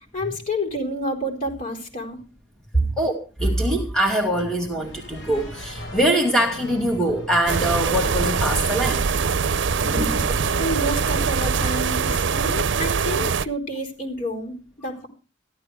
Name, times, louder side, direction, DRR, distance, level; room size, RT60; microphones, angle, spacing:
voice 1, 0.1-2.2 10.6-15.1, equal, 45° left, 4.4 m, -29 dB
voice 2, 2.8-9.2 9.8-10.3, right 1 dB, 5° left, 2.0 m, -23 dB
sound 1, 4.8-11.7, left 1 dB, 70° left, 4.7 m, -38 dB
sound 2, 7.5-13.4, right 5 dB, 75° right, 0.6 m, -23 dB
14.5 x 12.5 x 4.9 m
head